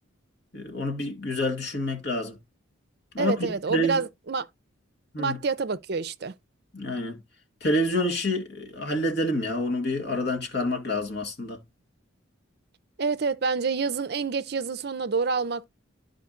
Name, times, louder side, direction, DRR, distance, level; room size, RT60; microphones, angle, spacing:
voice 1, 0.5-2.4 3.1-4.0 5.1-5.4 6.7-7.2 7.6-11.6, left 1 dB, 50° left, 2.0 m, -28 dB
voice 2, 3.2-4.5 5.2-6.3 13.0-15.6, right 4 dB, 50° right, 0.5 m, -27 dB
11.5 x 5.0 x 2.4 m
head